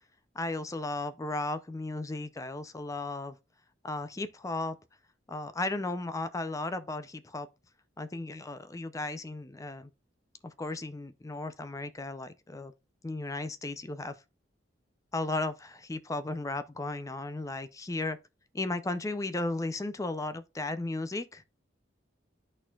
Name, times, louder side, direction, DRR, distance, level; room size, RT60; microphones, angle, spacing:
voice 1, 0.3-3.4 3.8-4.8 5.3-7.5 8.0-9.9 10.4-12.7 13.0-14.2 15.1-18.2 18.5-21.4, left 2 dB, 15° left, 0.4 m, -35 dB
12.5 x 4.4 x 2.3 m
head